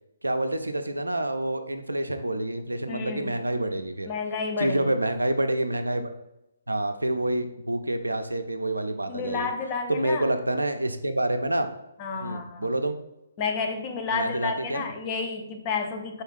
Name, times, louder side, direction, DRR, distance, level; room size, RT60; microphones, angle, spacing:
voice 1, 0.2-4.1 4.6-6.1 6.7-9.5 9.9-11.7 12.2-13.0 14.1-14.8, right 1 dB, 85° right, 7 dB, 0.3 m, -27 dB
voice 2, 2.9-3.4 4.1-5.0 9.1-10.3 12.0-12.7 13.4-16.2, left 5 dB, 30° left, 4 dB, 0.4 m, -31 dB
4.3 x 2.3 x 3.2 m, 0.88 s
figure-of-eight pair, 135°, 0 cm